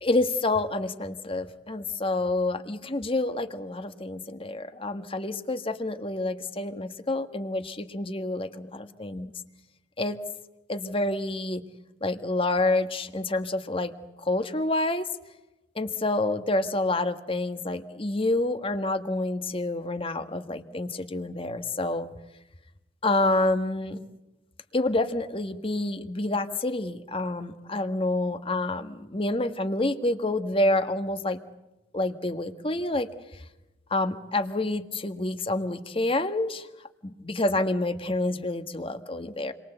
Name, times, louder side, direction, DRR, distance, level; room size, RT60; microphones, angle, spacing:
voice 1, 0.0-9.3 10.0-10.2 10.7-11.6 12.0-13.9 14.2-15.1 15.7-22.1 23.0-24.0 24.7-31.4 31.9-33.1 33.9-36.7 37.0-39.5, left 2 dB, 30° left, 8 dB, 1.6 m, -28 dB
29.5 x 23.0 x 8.0 m, 0.98 s
head